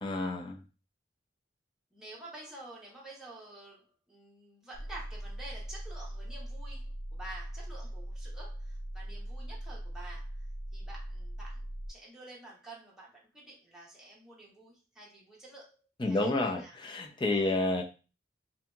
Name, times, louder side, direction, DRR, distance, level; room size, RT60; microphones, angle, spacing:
voice 1, 0.0-0.6 16.0-17.8, left 2 dB, 25° left, 2 dB, 0.5 m, -30 dB
voice 2, 1.9-10.5 10.7-16.7 17.3-17.5, right 2 dB, 5° right, -5 dB, 0.8 m, -50 dB
sound 1, 4.7-11.9, right 1 dB, 35° right, 0.4 m, -40 dB
2.7 x 2.7 x 2.3 m, 0.32 s
head